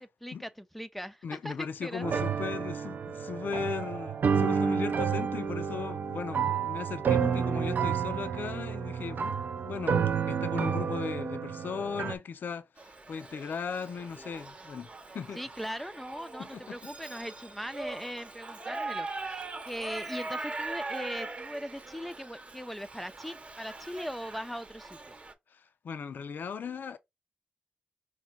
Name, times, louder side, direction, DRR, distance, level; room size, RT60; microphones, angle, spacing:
voice 1, 0.0-2.2 15.4-25.1, equal, 5° left, 0.4 m, -40 dB
voice 2, 1.2-9.4 9.6-15.4 16.4-16.8 25.5-27.0, left 6 dB, 75° left, 0.4 m, -37 dB
sound 1, 2.0-12.1, right 7 dB, 70° right, 0.5 m, -30 dB
Shout / Livestock farm animals working animals, 12.8-25.3, right 3 dB, 40° right, 0.8 m, -41 dB
4.6 x 2.1 x 3.8 m
cardioid pair, 60°, 3 cm